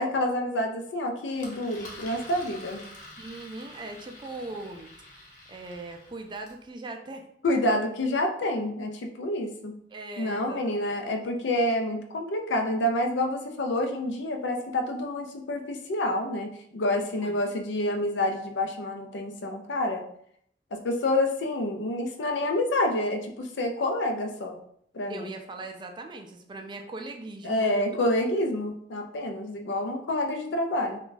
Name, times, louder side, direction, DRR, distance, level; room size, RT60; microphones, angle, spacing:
voice 1, 0.0-2.9 7.4-9.8 10.2-20.0 20.7-24.6 24.9-25.3 27.4-31.0, left 1 dB, 85° left, 4 dB, 0.5 m, -28 dB
Engine, 1.3-6.6, left 2 dB, 45° left, 0.8 m, -47 dB
voice 2, 3.2-7.2 9.9-10.6 11.0-11.1 17.1-17.4 25.1-28.0, right 2 dB, 25° right, 3 dB, 0.3 m, -40 dB
2.6 x 2.3 x 3.8 m, 0.68 s
head